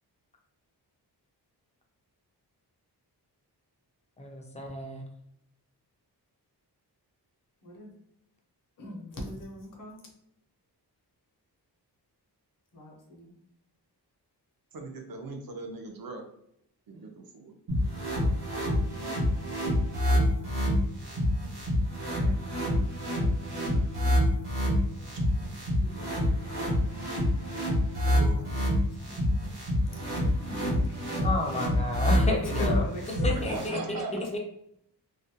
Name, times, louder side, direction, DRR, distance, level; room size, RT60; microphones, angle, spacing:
voice 1, 4.2-5.0 31.2-32.8 33.2-33.8 34.3-34.4, left 1 dB, 20° left, 1 dB, 0.3 m, -31 dB
voice 2, 8.8-10.0 12.7-13.3 22.2-22.3 25.3-25.4 25.8-27.1 28.0-29.4 29.9-31.3 32.0-34.2, left 1 dB, 50° left, 0 dB, 0.6 m, -42 dB
voice 3, 14.7-16.2 16.9-17.5 22.1-22.3 24.6-25.5 28.1-28.4 32.5-32.6 33.3-34.1, right 3 dB, 60° right, 3 dB, 0.5 m, -40 dB
sound 1, 17.7-33.7, left 1 dB, 90° right, 1.0 m, -27 dB
2.4 x 2.1 x 2.7 m, 0.73 s
wide cardioid pair, 155°, 41 cm